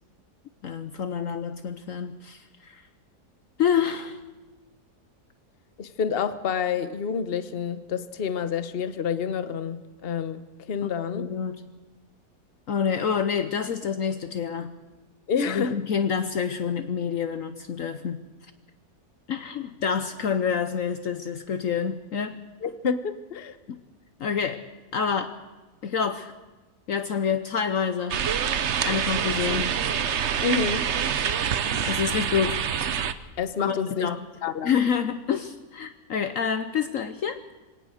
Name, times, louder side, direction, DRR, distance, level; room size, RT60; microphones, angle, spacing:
voice 1, 0.6-2.8 3.6-4.2 10.8-11.7 12.7-14.8 15.5-18.2 19.3-22.4 23.7-23.8 24.2-24.6 24.9-25.4 25.8-26.3 26.9-28.2 28.8-29.7 31.8-32.6 33.6-34.2 34.6-37.4, left 7 dB, 60° left, 10 dB, 1.1 m, -27 dB
voice 2, 5.8-11.2 15.3-15.7 22.6-23.5 30.4-30.8 33.4-34.1 34.4-34.7, left 6 dB, 40° left, 12 dB, 1.1 m, -28 dB
sound 1, 28.1-33.1, right 8 dB, 50° right, 1.0 m, -26 dB
23.0 x 17.5 x 6.5 m, 1.2 s
omnidirectional pair, 1.7 m